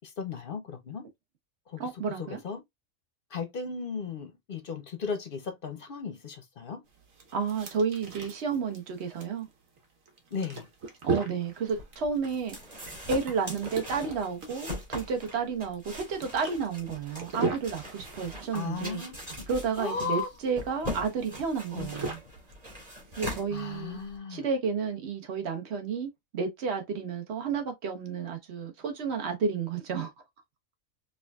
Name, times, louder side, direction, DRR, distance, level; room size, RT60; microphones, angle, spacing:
voice 1, 0.2-1.0 1.7-2.6 3.3-6.8 10.3-10.7 18.5-19.5 19.8-20.3 21.7-22.2 23.5-24.5, left 5 dB, 50° left, 0.7 m, -36 dB
voice 2, 1.8-2.4 7.3-9.5 11.0-12.6 13.1-19.0 19.5-22.2 23.2-24.0 24.3-30.1, right 5 dB, 55° right, 1.2 m, -31 dB
sound 1, 6.9-23.4, right 4 dB, 85° right, 1.4 m, -38 dB
sound 2, 11.7-24.2, left 1 dB, 30° right, 2.0 m, -41 dB
4.8 x 2.5 x 2.3 m
omnidirectional pair, 1.4 m